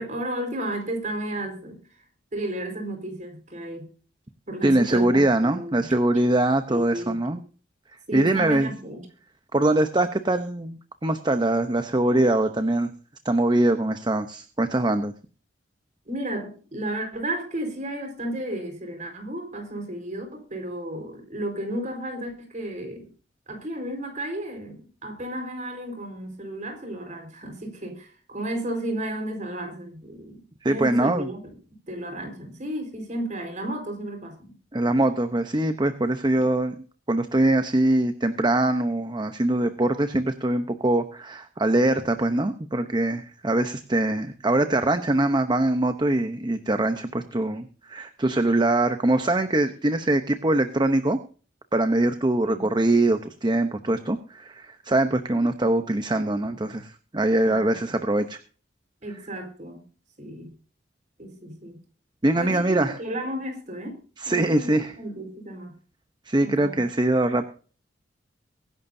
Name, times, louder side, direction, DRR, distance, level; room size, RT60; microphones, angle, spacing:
voice 1, 0.0-1.8 2.3-3.9 4.5-5.9 6.7-7.2 8.1-9.1 16.1-23.1 23.5-34.5 36.3-36.5 52.4-52.7 57.4-58.0 59.0-59.8 60.2-60.5 61.2-61.8 62.3-64.0 64.2-65.7 66.4-66.8, right 1 dB, 45° right, 5 dB, 4.3 m, -33 dB
voice 2, 4.6-7.4 8.1-8.7 9.5-12.9 13.2-15.1 30.6-31.3 34.7-36.7 37.1-51.2 51.7-58.4 62.2-63.0 64.2-64.9 66.3-67.5, right 1 dB, 25° right, 8 dB, 0.8 m, -23 dB
23.0 x 11.0 x 2.7 m, 0.39 s
head